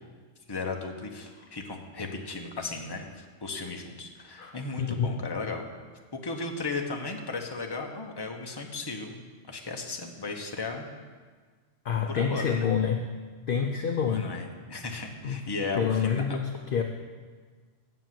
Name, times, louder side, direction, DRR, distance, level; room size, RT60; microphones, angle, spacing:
voice 1, 0.5-5.6 6.1-10.9 12.1-12.7 14.1-16.2, left 3 dB, 20° left, 2 dB, 0.9 m, -35 dB
voice 2, 4.4-5.2 11.8-13.1 13.5-14.3 15.2-15.4 15.7-16.8, left 7 dB, 55° left, 4 dB, 0.7 m, -28 dB
7.8 x 7.1 x 7.6 m, 1.5 s
omnidirectional pair, 1.3 m